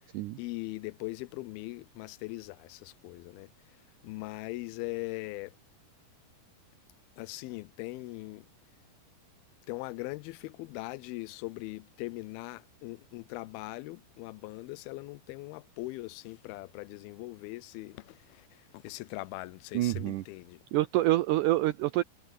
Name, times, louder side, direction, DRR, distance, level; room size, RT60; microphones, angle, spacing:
voice 1, 0.4-3.5 4.0-5.5 7.2-8.5 9.7-20.6, left 21 dB, 90° left, 2.5 m, -40 dB
voice 2, 19.7-20.2 20.7-22.0, right 16 dB, 85° right, 1.8 m, -26 dB
omnidirectional pair, 4.3 m